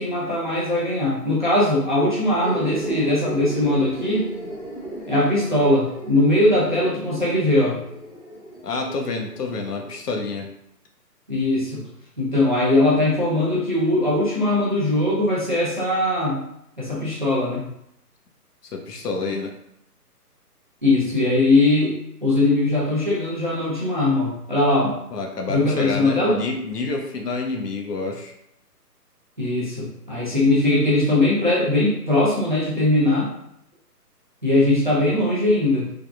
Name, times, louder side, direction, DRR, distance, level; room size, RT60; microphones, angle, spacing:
voice 1, 0.0-4.3 5.1-7.8 11.3-11.8 12.2-16.4 16.8-17.7 20.8-21.9 22.2-25.0 25.5-26.4 29.4-33.3 34.4-35.9, left 2 dB, 30° right, -7 dB, 0.5 m, -20 dB
sound 1, 2.4-10.0, right 1 dB, 40° left, 0.7 m, -35 dB
voice 2, 8.6-10.5 18.7-19.5 25.1-28.3, left 3 dB, 75° left, 2 dB, 0.7 m, -28 dB
3.5 x 2.1 x 2.4 m, 0.77 s
hypercardioid pair, 165°, 48 cm